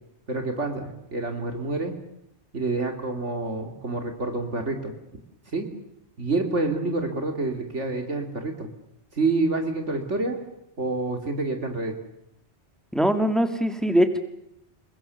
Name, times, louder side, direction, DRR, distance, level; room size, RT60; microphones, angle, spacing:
voice 1, 0.3-2.0 2.5-4.9 5.5-5.7 6.2-8.7 9.1-10.4 10.8-12.0, right 3 dB, 75° right, 4 dB, 2.9 m, -27 dB
voice 2, 12.9-14.2, equal, ahead, 7 dB, 2.1 m, -22 dB
28.0 x 22.0 x 6.9 m, 0.80 s
omnidirectional pair, 1.2 m